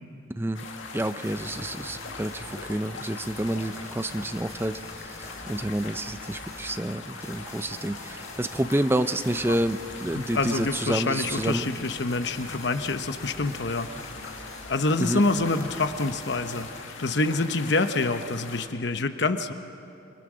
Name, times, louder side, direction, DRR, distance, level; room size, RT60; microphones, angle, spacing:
sound 1, 0.5-18.7, left 4 dB, 90° left, 2.0 m, -41 dB
voice 1, 0.9-11.7 15.0-15.2, right 1 dB, 10° right, 10 dB, 0.6 m, -29 dB
sound 2, 1.2-2.7 3.2-6.7 7.2-8.7 9.2-10.7 11.2-14.7 15.2-16.7, left 1 dB, 20° left, 4.5 m, -45 dB
voice 2, 10.1-13.9 14.7-16.7 17.0-19.5, left 3 dB, 60° left, 9 dB, 0.9 m, -26 dB
28.0 x 22.5 x 6.2 m, 2.6 s
head